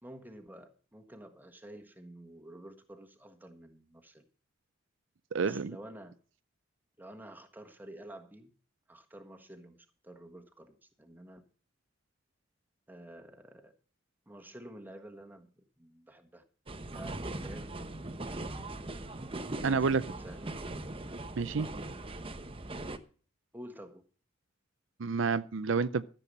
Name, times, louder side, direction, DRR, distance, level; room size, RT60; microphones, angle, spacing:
voice 1, 0.0-4.2 5.4-6.1 7.0-8.5 8.9-11.4 12.9-13.7 14.3-16.4 16.8-17.7 19.6-20.5 23.5-24.0, right 1 dB, 10° right, 1.4 m, -50 dB
voice 2, 5.3-5.8 19.6-20.0 21.4-21.7 25.0-26.0, right 5 dB, 70° right, 0.5 m, -29 dB
sound 1, 16.7-23.0, right 2 dB, 30° right, 0.9 m, -40 dB
14.0 x 7.7 x 5.5 m
head